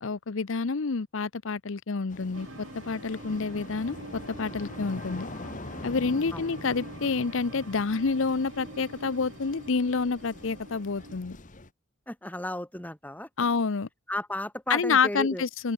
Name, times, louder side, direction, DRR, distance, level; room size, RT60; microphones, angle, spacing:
voice 1, 0.0-2.5 2.9-5.2 5.8-11.4 13.4-13.9 14.7-15.7, left 4 dB, 60° left, 0.7 m, -28 dB
sound 1, 2.1-11.7, left 2 dB, 35° left, 1.3 m, -43 dB
sound 2, 2.3-11.2, right 2 dB, 65° right, 1.8 m, -46 dB
voice 2, 12.1-13.3 14.1-15.4, left 1 dB, 5° left, 1.6 m, -34 dB
head